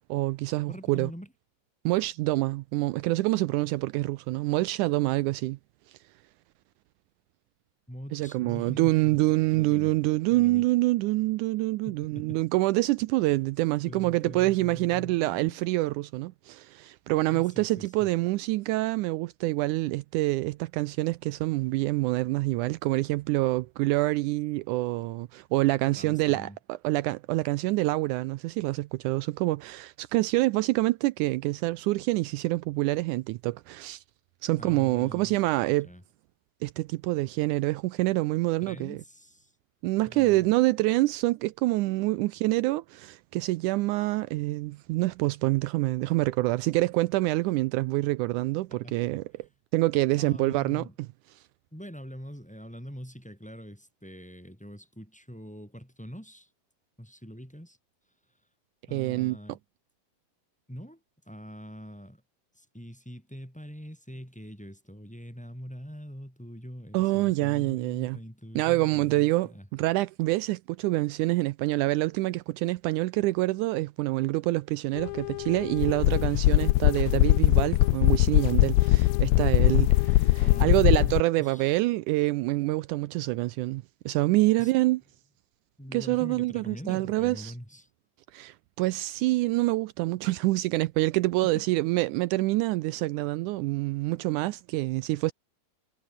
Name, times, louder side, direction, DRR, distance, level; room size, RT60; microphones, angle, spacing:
voice 1, 0.1-1.1 1.9-5.6 5.9-6.0 8.1-34.0 34.4-35.9 36.6-39.0 39.8-49.5 49.7-51.1 51.4-51.5 58.9-59.4 66.9-68.2 68.6-85.0 85.9-87.5 88.3-95.3, right 19 dB, 85° right, 1.8 m, -26 dB
voice 2, 0.7-1.3 7.9-9.2 9.5-9.9 10.3-10.7 11.9-12.4 13.8-15.6 17.3-18.1 25.8-26.6 34.6-35.4 35.8-36.0 38.6-39.5 40.0-40.5 48.7-49.0 50.2-50.9 51.7-56.5 57.0-57.8 58.9-59.6 60.7-61.0 61.3-62.2 62.6-69.7 80.3-81.8 84.6-84.7 85.8-87.9 91.5-91.6, equal, ahead, 5.8 m, -43 dB
sound 1, 75.0-81.2, left 19 dB, 85° left, 2.5 m, -22 dB
omnidirectional pair, 4.2 m